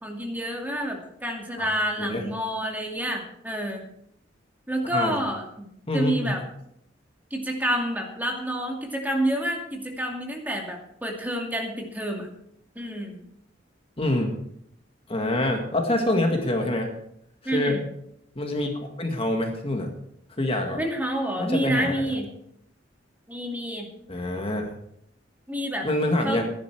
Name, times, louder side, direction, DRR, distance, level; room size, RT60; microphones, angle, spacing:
voice 1, 0.0-3.8 4.7-5.7 5.9-6.4 7.3-12.3 12.8-13.2 17.4-17.8 20.7-22.3 23.3-23.9 25.5-25.9 26.2-26.4, right 1 dB, 10° right, 1 dB, 2.4 m, -28 dB
voice 2, 5.9-6.3 14.0-14.3 15.1-16.9 17.5-17.8 18.4-20.0 20.3-20.8 21.4-21.9 24.1-24.7 25.8-26.4, left 1 dB, 30° left, 3 dB, 1.8 m, -26 dB
15.0 x 11.5 x 4.8 m, 0.73 s
head